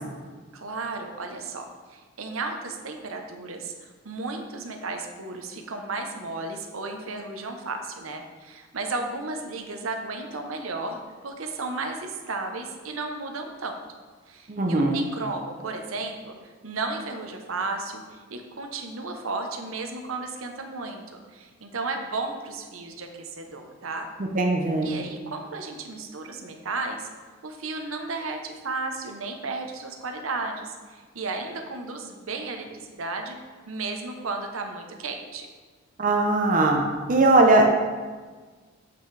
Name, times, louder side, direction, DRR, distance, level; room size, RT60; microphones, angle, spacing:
voice 1, 0.5-13.8 14.3-21.0 21.3-24.1 24.8-27.1 27.4-33.4 33.7-35.5, right 3 dB, 90° right, 4 dB, 0.9 m, -34 dB
voice 2, 14.5-15.0 24.3-25.0 36.0-37.8, right 2 dB, 40° right, 1 dB, 0.7 m, -20 dB
7.8 x 5.9 x 3.3 m, 1.4 s
head